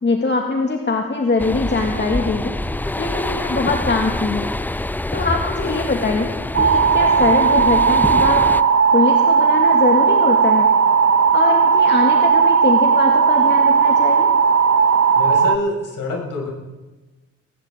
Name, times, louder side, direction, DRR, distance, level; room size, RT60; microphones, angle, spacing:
voice 1, 0.0-2.6 3.0-4.5 5.1-8.5 8.9-10.7 11.3-14.3, left 3 dB, 25° left, 2 dB, 2.2 m, -22 dB
sound 1, 1.4-8.6, left 1 dB, 5° left, 0.5 m, -25 dB
sound 2, 6.5-15.6, right 6 dB, 35° right, 1.1 m, -15 dB
voice 2, 15.1-16.5, left 2 dB, 55° left, -1 dB, 6.6 m, -26 dB
19.5 x 18.0 x 3.9 m, 1.2 s
hypercardioid pair, 40°, 39 cm